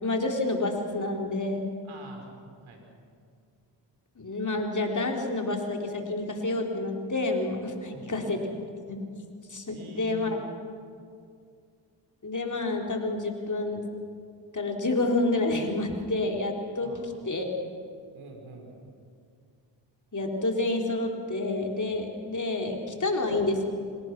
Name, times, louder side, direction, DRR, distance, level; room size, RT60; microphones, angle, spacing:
voice 1, 0.0-1.7 4.2-8.4 8.9-9.0 9.5-10.3 12.2-13.8 14.5-17.5 20.1-23.7, left 2 dB, 40° left, 2 dB, 3.9 m, -29 dB
voice 2, 1.8-2.8 7.8-8.3 9.7-10.4 16.8-17.1 18.1-18.7, right 2 dB, 80° right, 2 dB, 5.0 m, -46 dB
26.5 x 19.0 x 6.2 m, 2.3 s
supercardioid pair, 45°, 48 cm